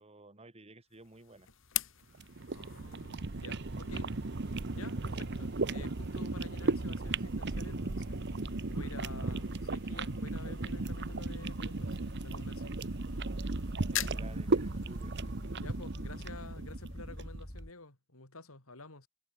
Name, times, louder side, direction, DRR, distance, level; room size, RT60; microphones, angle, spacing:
voice 1, 0.0-1.5 13.9-15.7, right 2 dB, 30° right, 2.3 m, -54 dB
sound 1, 0.9-17.8, left 13 dB, 65° left, 4.1 m, -47 dB
sound 2, 2.1-17.4, right 3 dB, 55° right, 1.0 m, -36 dB
voice 2, 2.5-4.2 4.5-12.9 15.6-19.1, left 2 dB, 90° left, 3.9 m, -50 dB
sound 3, 7.6-17.7, equal, 15° left, 2.9 m, -46 dB
head